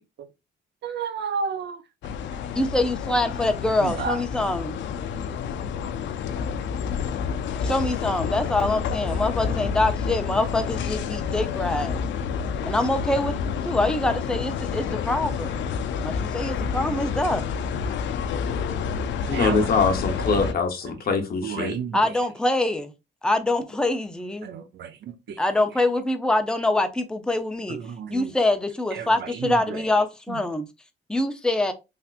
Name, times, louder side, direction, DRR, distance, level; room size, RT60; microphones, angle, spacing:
voice 1, 0.8-1.8 3.8-4.2 19.3-19.7 20.1-20.4 21.1-22.0 24.4-25.4 27.7-28.3 28.9-29.8 30.3-30.4, right 6 dB, 60° right, 0.6 m, -32 dB
sound 1, 2.0-20.5, left 6 dB, 70° left, 0.4 m, -29 dB
voice 2, 2.5-4.8 7.6-12.0 12.6-15.6 16.0-17.5 21.9-22.9 23.2-24.5 25.4-27.8 28.1-30.7 31.1-31.7, left 2 dB, 5° left, 0.5 m, -24 dB
voice 3, 19.3-21.7, left 5 dB, 50° left, 0.9 m, -23 dB
3.3 x 2.8 x 2.4 m
cardioid pair, 90°, 20 cm